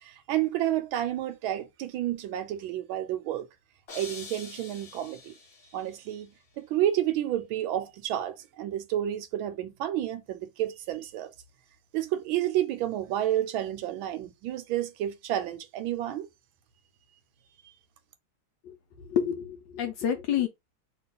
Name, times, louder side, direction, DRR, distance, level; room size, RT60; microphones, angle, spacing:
voice 1, 0.0-3.5 3.9-5.3 5.7-11.3 11.9-16.3, right 12 dB, 75° right, 1.3 m, -30 dB
sound 1, 3.9-6.0, left 4 dB, 45° left, 0.9 m, -45 dB
voice 2, 19.1-20.5, left 9 dB, 75° left, 1.1 m, -28 dB
3.0 x 2.8 x 3.9 m
omnidirectional pair, 2.3 m